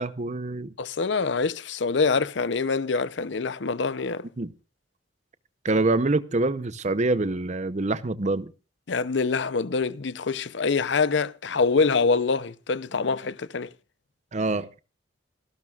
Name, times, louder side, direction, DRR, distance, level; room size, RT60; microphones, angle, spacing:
voice 1, 0.0-0.7 4.4-4.5 5.6-8.5 14.3-14.8, right 2 dB, 40° right, 0.7 m, -25 dB
voice 2, 0.8-4.2 8.9-13.7, left 4 dB, 65° left, 0.6 m, -25 dB
28.0 x 12.0 x 2.4 m
head